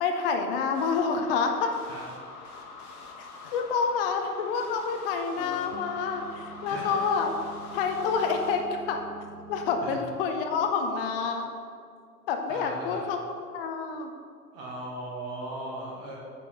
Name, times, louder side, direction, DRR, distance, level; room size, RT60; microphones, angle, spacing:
voice 1, 0.0-1.7 3.4-7.3 7.7-9.0 9.5-11.5 12.3-13.2 13.5-14.1, left 5 dB, 35° left, 4 dB, 0.7 m, -28 dB
sound 1, 0.7-8.6, left 4 dB, 65° left, 1.4 m, -45 dB
sound 2, 5.4-10.7, right 3 dB, 50° right, 0.7 m, -45 dB
voice 2, 6.6-7.1 9.8-10.0 12.5-13.1 14.5-16.2, right 1 dB, 30° right, -4 dB, 1.5 m, -38 dB
8.9 x 6.9 x 3.2 m, 2.2 s
figure-of-eight pair, 100°, 48 cm